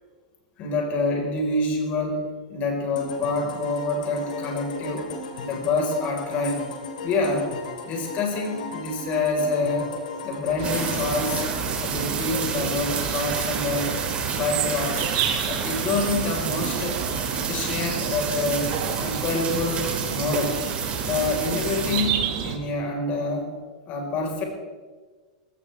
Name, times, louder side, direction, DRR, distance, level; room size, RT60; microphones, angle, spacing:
voice 1, 0.6-5.1 5.4-6.7 7.0-7.5 7.8-9.9 10.2-11.5 11.8-13.9 14.2-15.1 15.5-17.0 17.3-20.6 21.0-22.2 22.4-23.5 23.9-24.4, left 3 dB, 40° left, 1 dB, 5.0 m, -27 dB
sound 1, 3.0-12.7, left 3 dB, 85° left, 3.3 m, -37 dB
sound 2, 10.6-22.0, right 6 dB, 30° right, 3.2 m, -30 dB
sound 3, 10.6-22.6, right 8 dB, 55° right, 2.0 m, -30 dB
19.5 x 16.5 x 3.6 m, 1.4 s
hypercardioid pair, 130°, 4 cm